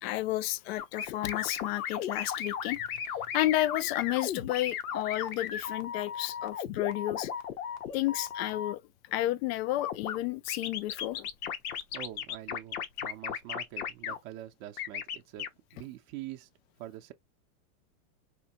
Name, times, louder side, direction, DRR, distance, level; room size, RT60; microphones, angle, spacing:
voice 1, 0.0-2.8 3.3-7.3 7.9-8.8 9.1-11.3, left 15 dB, 45° left, 0.4 m, -31 dB
sound 1, 0.8-8.7 9.8-10.2 10.5-14.2 14.8-15.5, left 8 dB, 80° left, 1.0 m, -35 dB
voice 2, 11.9-16.5 16.8-17.1, right 13 dB, 35° right, 0.5 m, -44 dB
4.4 x 2.1 x 2.8 m
supercardioid pair, 140°, 44 cm